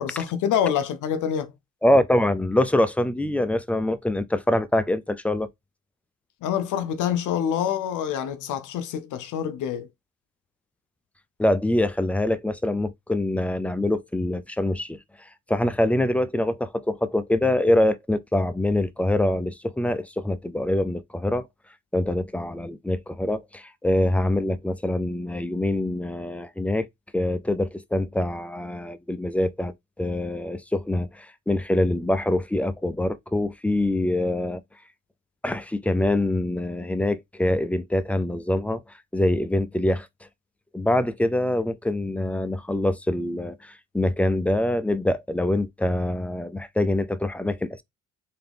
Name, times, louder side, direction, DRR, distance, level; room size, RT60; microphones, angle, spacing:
voice 1, 0.0-1.5 6.4-9.9, left 9 dB, 80° left, 0.7 m, -26 dB
voice 2, 1.8-5.5 11.4-21.5 21.9-26.9 27.1-34.6 35.4-38.8 39.1-40.1 40.7-47.8, left 1 dB, 5° left, 0.5 m, -24 dB
3.8 x 2.8 x 3.4 m
cardioid pair, 90°, 30 cm